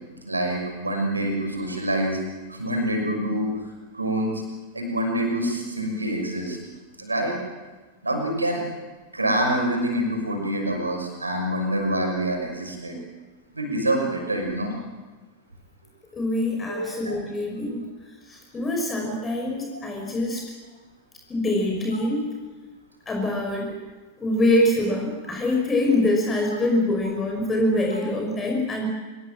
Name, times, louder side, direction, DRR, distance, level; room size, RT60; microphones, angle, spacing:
voice 1, 0.2-2.2 2.5-3.6 3.9-4.4 4.7-6.6 7.0-7.4 8.0-8.6 9.1-13.0 13.5-14.8 16.7-17.1 19.7-19.8, right 1 dB, 80° right, 3 dB, 6.2 m, -26 dB
voice 2, 16.1-17.8 18.3-20.4 21.3-22.2 23.1-23.7 24.2-28.9, left 1 dB, 20° left, 1 dB, 5.7 m, -24 dB
25.5 x 22.0 x 7.6 m, 1.3 s
figure-of-eight pair, 90°, 0 cm